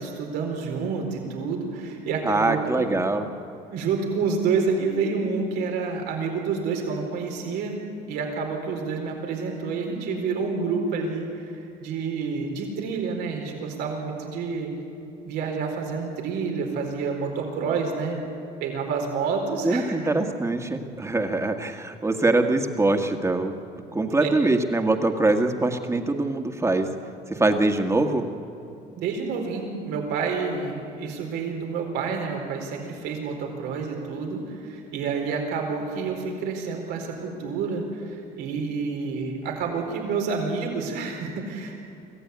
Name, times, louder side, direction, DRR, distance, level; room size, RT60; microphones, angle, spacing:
voice 1, 0.0-2.8 3.7-7.8 8.1-14.7 15.2-18.2 18.6-20.1 24.2-24.3 29.0-41.8, right 5 dB, 90° right, 1 dB, 4.4 m, -28 dB
voice 2, 2.3-3.3 19.6-23.5 23.9-26.9 27.3-28.2, right 2 dB, 15° right, 5 dB, 1.8 m, -23 dB
25.0 x 15.5 x 9.6 m, 2.6 s
cardioid pair, 110°, 17 cm